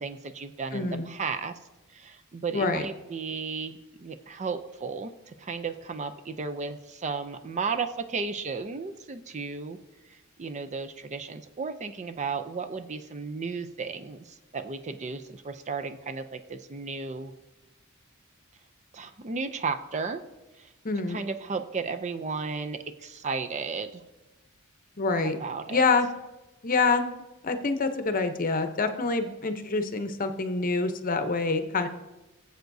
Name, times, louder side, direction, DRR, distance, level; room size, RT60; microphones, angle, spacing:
voice 1, 0.0-1.5 1.9-9.8 10.1-17.3 18.9-20.2 20.6-20.7 21.1-24.0 25.2-25.8, right 4 dB, 35° right, 8 dB, 0.5 m, -34 dB
voice 2, 0.7-1.1 2.5-2.9 20.8-21.2 25.0-25.4 25.7-26.1 26.6-27.2 27.4-31.9, left 3 dB, 40° left, 8 dB, 0.8 m, -26 dB
19.0 x 7.9 x 2.7 m, 1.1 s
head